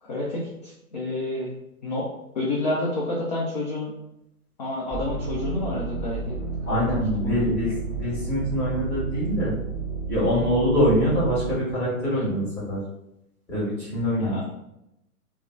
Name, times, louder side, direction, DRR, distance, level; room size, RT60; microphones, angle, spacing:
voice 1, 0.0-1.5 1.8-2.1 2.3-3.9 4.6-6.4 6.7-6.8 7.2-7.5 14.2-14.4, left 2 dB, 30° left, -5 dB, 0.4 m, -29 dB
sound 1, 4.9-11.6, right 4 dB, 20° right, 1.1 m, -31 dB
voice 2, 6.7-9.5 10.1-12.8 13.5-14.4, equal, 5° left, -9 dB, 1.2 m, -24 dB
2.7 x 2.0 x 3.4 m, 0.84 s
figure-of-eight pair, 125°, 45 cm